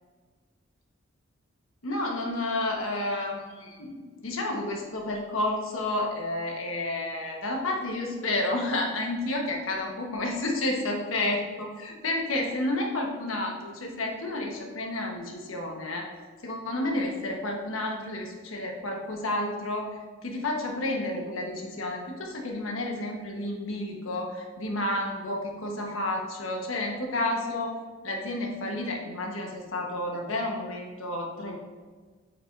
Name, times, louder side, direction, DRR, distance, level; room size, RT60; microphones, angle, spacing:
voice 1, 1.8-16.0 16.4-19.9 20.2-27.7 28.0-31.6, left 1 dB, 85° left, 1 dB, 1.2 m, -31 dB
8.5 x 5.6 x 2.6 m, 1.4 s
head